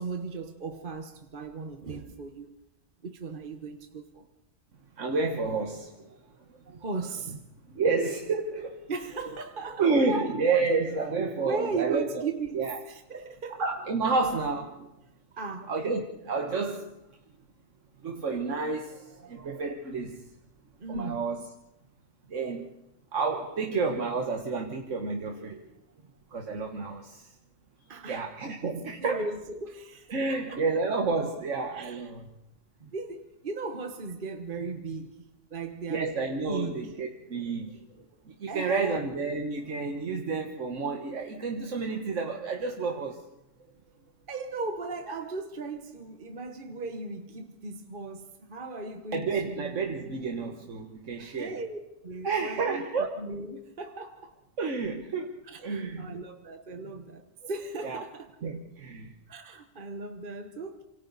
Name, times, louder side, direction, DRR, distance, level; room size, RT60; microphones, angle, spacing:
voice 1, 0.0-2.5 3.0-4.3 6.7-7.8 8.9-10.4 11.4-13.6 15.3-15.7 20.0-20.1 20.8-21.3 26.0-26.1 27.9-28.3 28.8-30.6 31.7-32.1 32.8-35.2 35.5-36.2 36.5-36.9 38.5-39.0 44.3-49.8 51.2-51.8 52.0-54.3 55.5-58.3 59.3-60.8, right 3 dB, 45° right, 1.3 m, -37 dB
voice 2, 5.0-6.2 6.7-6.9 7.7-8.8 9.8-12.3 12.5-12.8 13.6-14.9 15.7-16.9 18.0-20.3 20.9-21.4 22.3-22.7 23.1-25.6 26.3-27.3 28.1-29.2 30.1-32.3 35.9-37.8 38.3-43.2 49.1-51.5 52.2-53.2 54.6-56.1 57.4-57.5 57.8-58.0 58.4-59.1, right 4 dB, 85° right, 1.7 m, -30 dB
28.0 x 26.0 x 4.1 m
omnidirectional pair, 1.2 m